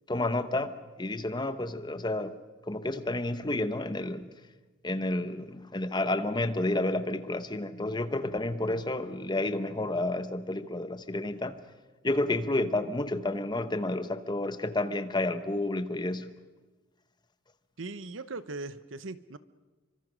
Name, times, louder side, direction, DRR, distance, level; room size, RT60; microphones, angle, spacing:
voice 1, 0.1-2.3 2.7-4.3 4.8-11.6 12.0-16.3, left 2 dB, 20° left, 11 dB, 1.0 m, -30 dB
voice 2, 17.8-19.4, right 3 dB, 75° right, 14 dB, 0.9 m, -39 dB
27.5 x 24.5 x 6.3 m, 1.2 s
head